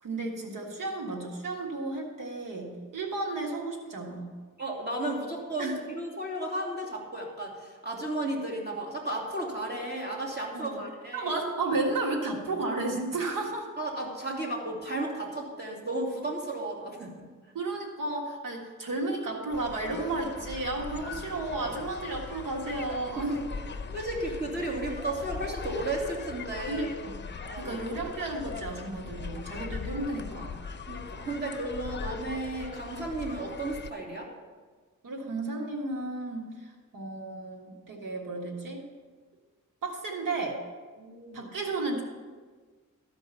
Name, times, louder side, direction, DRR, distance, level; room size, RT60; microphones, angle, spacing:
voice 1, 0.0-4.3 5.6-5.7 10.5-10.8 11.1-13.7 17.5-23.4 26.7-27.2 27.6-30.5 35.0-36.5 36.9-38.8 39.8-40.6 41.3-42.0, right 2 dB, 85° right, 0 dB, 1.7 m, -33 dB
voice 2, 4.6-11.3 13.8-17.2 23.2-23.4 23.9-26.9 27.4-27.8 30.9-34.3 41.0-41.5, right 1 dB, 30° right, -2 dB, 2.8 m, -34 dB
sound 1, 19.5-33.9, left 5 dB, 35° left, 0.7 m, -40 dB
13.0 x 5.2 x 7.0 m, 1.4 s
cardioid pair, 75°, 32 cm